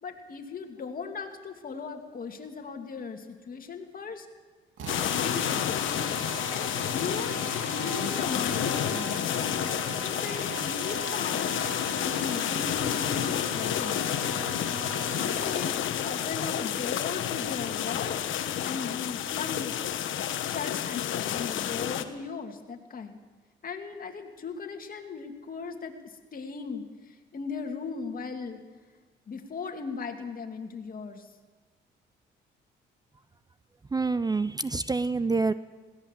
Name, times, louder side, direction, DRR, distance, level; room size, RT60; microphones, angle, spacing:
voice 1, 0.0-4.3 5.2-5.8 6.5-7.4 7.7-9.2 9.9-14.0 15.3-15.7 16.0-19.8 20.4-23.2 23.6-28.6 29.3-31.3, left 5 dB, 45° left, 4 dB, 2.4 m, -38 dB
Drill, 4.8-15.8, right 5 dB, 80° right, 2.8 m, -40 dB
sound 1, 4.9-22.0, left 10 dB, 75° left, 1.3 m, -30 dB
voice 2, 33.9-35.5, right 3 dB, 20° right, 14 dB, 0.6 m, -27 dB
21.0 x 17.5 x 7.5 m, 1.3 s
cardioid pair, 90°, 20 cm